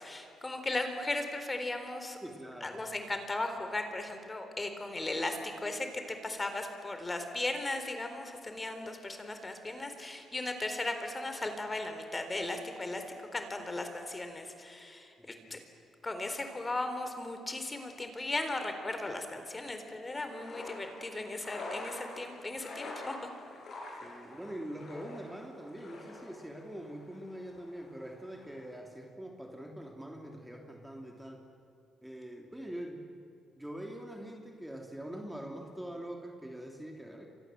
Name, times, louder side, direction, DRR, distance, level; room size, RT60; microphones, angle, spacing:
voice 1, 0.0-2.2 2.6-15.6 16.0-23.2, left 2 dB, 20° left, 7 dB, 3.9 m, -37 dB
voice 2, 2.2-2.8 15.2-15.7 24.0-31.4 32.0-33.0 33.6-37.3, right 1 dB, 5° right, 2 dB, 2.9 m, -44 dB
sound 1, 20.1-28.8, left 2 dB, 60° left, 7.6 m, -47 dB
30.0 x 25.0 x 7.8 m, 2.6 s
cardioid pair, 90°, 0 cm